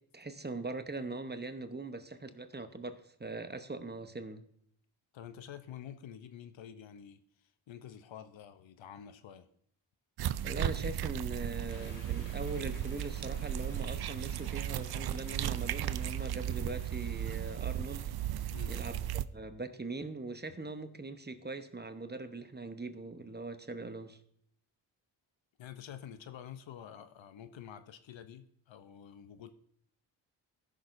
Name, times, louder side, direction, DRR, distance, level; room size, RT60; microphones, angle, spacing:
voice 1, 0.1-4.4 10.4-19.0 19.3-24.2, right 3 dB, 20° right, 0.9 m, -41 dB
voice 2, 5.1-9.5 18.5-18.8 25.6-29.5, left 9 dB, 65° left, 0.8 m, -49 dB
sound 1, 10.2-19.2, right 11 dB, 55° right, 0.5 m, -35 dB
sound 2, 11.7-18.5, left 4 dB, 40° left, 1.2 m, -58 dB
14.5 x 6.3 x 2.6 m
cardioid pair, 50°, 49 cm